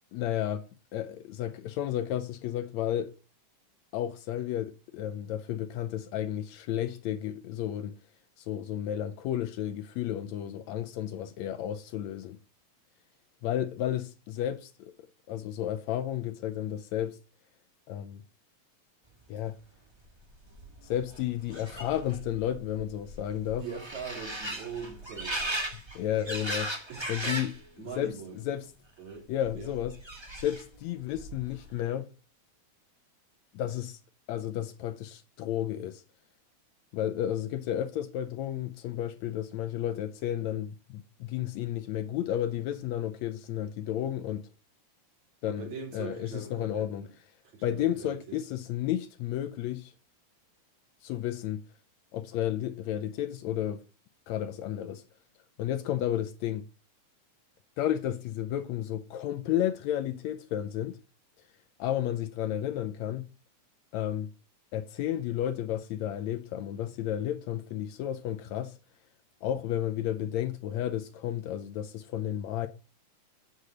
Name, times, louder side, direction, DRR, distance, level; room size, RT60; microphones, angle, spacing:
voice 1, 0.1-0.6 0.9-3.1 3.9-7.9 8.4-12.4 13.4-14.9 15.3-17.2 17.9-18.2 19.3-19.6 20.8-23.6 25.7-26.7 27.1-27.5 28.0-28.1 28.4-28.7 29.3-29.9 30.4-32.1 33.5-34.0 34.3-36.0 36.9-44.5 45.4-47.0 47.6-49.9 51.0-51.6 52.1-53.8 54.3-55.0 55.6-56.6 57.8-61.0 61.8-63.2 63.9-64.3 64.7-68.7 69.4-72.7, left 11 dB, 75° left, 1.8 m, -32 dB
sound 1, 20.1-20.2 20.3-27.6 27.9-28.5 29.4-30.8 31.1-31.7, right 1 dB, 25° right, 0.5 m, -38 dB
voice 2, 23.6-25.7 26.9-27.4 27.8-28.4 29.0-29.7 45.5-47.1 47.4-48.2, right 6 dB, 65° right, 4.5 m, -42 dB
8.3 x 7.9 x 3.9 m
omnidirectional pair, 3.5 m